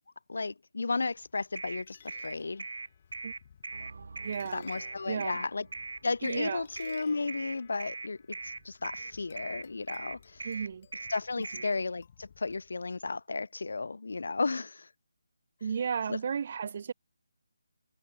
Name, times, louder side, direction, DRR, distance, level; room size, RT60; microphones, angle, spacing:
voice 1, 0.3-2.6 4.5-5.7 6.0-8.2 8.4-10.5 11.1-14.9 16.1-16.2, left 3 dB, 70° left, 0.8 m, -34 dB
sound 1, 1.0-13.1, left 8 dB, 35° left, 1.6 m, -59 dB
sound 2, 1.6-11.7, right 3 dB, 85° right, 2.5 m, -40 dB
sound 3, 3.7-10.9, right 4 dB, 60° right, 2.7 m, -56 dB
voice 2, 4.2-4.6 5.1-5.4 6.2-6.7 10.4-10.9 11.5-11.6 15.6-16.9, right 7 dB, 35° right, 1.3 m, -34 dB
hypercardioid pair, 170°, 0 cm